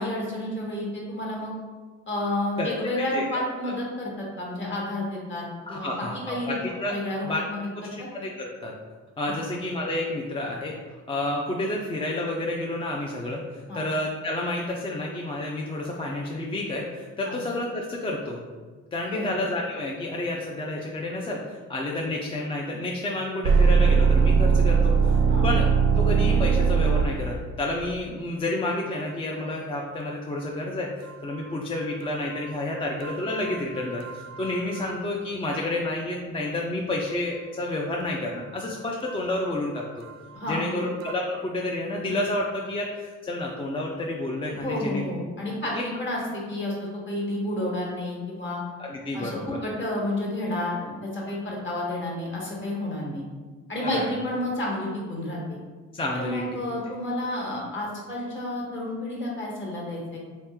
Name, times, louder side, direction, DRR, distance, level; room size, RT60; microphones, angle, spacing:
voice 1, 0.0-1.5 2.1-5.9 6.3-6.6 6.9-7.9 9.3-9.4 13.7-13.8 17.2-17.4 19.0-19.3 25.3-25.5 40.3-40.9 44.6-48.6 49.1-53.2 53.7-55.6 56.1-60.2, left 1 dB, 40° left, -3 dB, 1.3 m, -30 dB
voice 2, 2.6-3.7 5.7-7.0 7.2-7.4 8.1-8.8 9.2-10.8 11.1-18.4 18.9-21.4 21.7-25.2 25.4-25.7 26.0-30.9 31.2-40.0 40.5-45.0 45.7-45.8 48.8-49.6 53.8-54.1 55.9-56.4, left 1 dB, 20° left, -2 dB, 0.4 m, -30 dB
sound 1, 23.4-27.5 33.0-34.5 34.8-34.9 41.0-41.1, right 5 dB, 65° right, 0.5 m, -20 dB
3.2 x 2.9 x 3.5 m, 1.4 s
cardioid pair, 90°, 30 cm